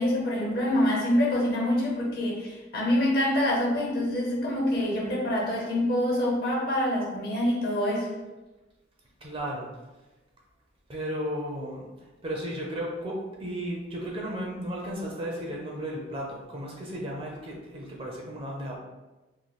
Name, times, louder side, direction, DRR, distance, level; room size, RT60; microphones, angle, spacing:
voice 1, 0.0-8.1, left 1 dB, 55° left, -3 dB, 0.9 m, -26 dB
voice 2, 9.2-9.7 10.9-11.9 12.2-18.8, equal, 30° right, -2 dB, 0.6 m, -34 dB
3.1 x 2.1 x 4.0 m, 1.1 s
head